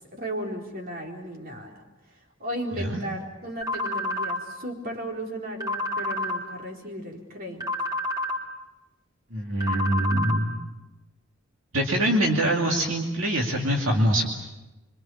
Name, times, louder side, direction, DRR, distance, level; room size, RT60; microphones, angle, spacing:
voice 1, 0.1-1.8 2.4-7.6, equal, 45° right, 0 dB, 4.4 m, -35 dB
sound 1, 3.6-4.4 5.6-6.4 7.6-8.4 9.6-10.4, left 1 dB, 20° right, 4.0 m, -28 dB
voice 2, 9.3-10.6 11.7-14.3, right 1 dB, 75° right, 0 dB, 2.6 m, -24 dB
26.5 x 25.0 x 7.2 m, 1.0 s
head